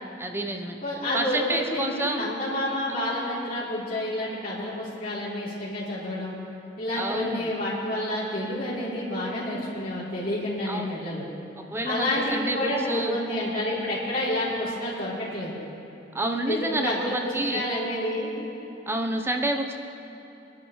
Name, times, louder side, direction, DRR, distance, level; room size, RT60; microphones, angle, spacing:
voice 1, 0.2-0.8 1.1-2.3 2.9-3.0 6.9-7.5 10.7-10.9 11.6-13.2 16.1-17.6 18.9-19.7, right 1 dB, 15° right, 3 dB, 0.8 m, -29 dB
voice 2, 0.8-6.3 6.8-11.2 11.8-15.5 16.5-18.3, left 1 dB, 50° left, -9 dB, 3.3 m, -29 dB
24.5 x 11.5 x 3.2 m, 3.0 s
head